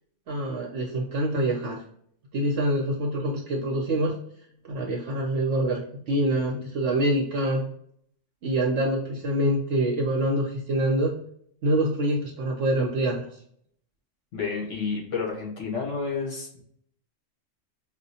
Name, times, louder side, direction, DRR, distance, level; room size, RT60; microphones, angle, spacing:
voice 1, 0.3-1.8 2.3-4.2 4.7-7.7 8.4-11.2 11.6-13.3, right 1 dB, 70° right, -1 dB, 1.0 m, -25 dB
voice 2, 14.3-16.6, left 5 dB, 70° left, -2 dB, 1.6 m, -30 dB
4.8 x 2.1 x 2.7 m, 0.66 s
omnidirectional pair, 1.3 m